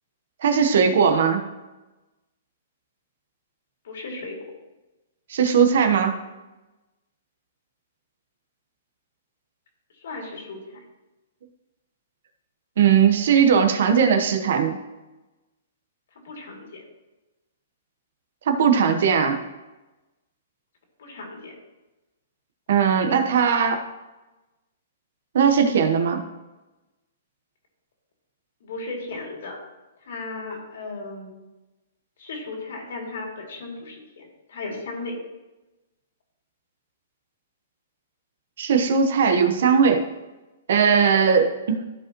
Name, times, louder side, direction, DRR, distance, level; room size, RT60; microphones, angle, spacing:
voice 1, 0.4-1.4 5.3-6.1 12.8-14.8 18.5-19.4 22.7-23.8 25.3-26.2 38.6-40.0 40.7-41.8, right 6 dB, 65° right, 6 dB, 1.0 m, -19 dB
voice 2, 3.8-4.4 9.9-10.8 16.2-16.8 21.0-21.5 28.6-29.6 30.0-31.4 32.2-35.2, left 3 dB, 70° left, 0 dB, 2.8 m, -36 dB
13.5 x 5.2 x 3.0 m, 1.1 s
hypercardioid pair, 160°, 0 cm